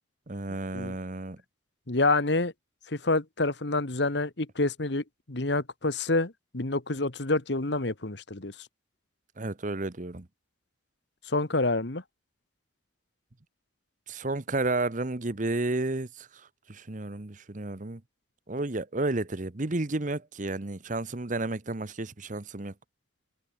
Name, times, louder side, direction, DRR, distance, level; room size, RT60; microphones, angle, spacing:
voice 1, 0.3-1.4 9.4-10.3 14.1-16.3 16.7-18.0 18.5-22.7, right 2 dB, 40° right, 1.0 m, -32 dB
voice 2, 1.9-2.5 2.9-8.5 11.3-12.0, left 2 dB, 65° left, 1.6 m, -28 dB
head